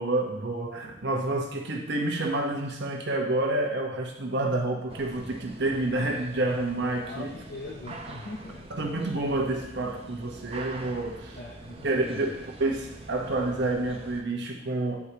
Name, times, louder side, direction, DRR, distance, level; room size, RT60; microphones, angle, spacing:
voice 1, 0.0-7.3 8.7-11.4 11.8-12.2 12.6-15.0, right 2 dB, 65° right, 2 dB, 1.1 m, -28 dB
voice 2, 1.0-1.4 6.8-8.7 11.3-12.4, left 2 dB, 55° left, -1 dB, 0.8 m, -41 dB
sound 1, 4.9-14.2, right 2 dB, 30° right, 0.7 m, -44 dB
9.5 x 4.8 x 2.9 m, 0.85 s
head